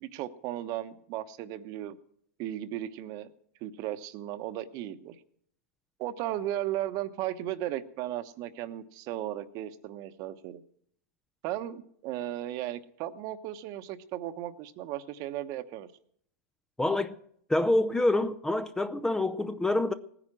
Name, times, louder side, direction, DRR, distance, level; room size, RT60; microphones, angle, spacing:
voice 1, 0.0-2.0 2.4-3.3 3.6-5.1 6.0-10.6 11.4-15.9, right 13 dB, 45° right, 1.0 m, -36 dB
voice 2, 16.8-17.1 17.5-19.9, left 2 dB, 5° left, 0.6 m, -26 dB
18.5 x 10.0 x 6.1 m
hypercardioid pair, 125°, 8 cm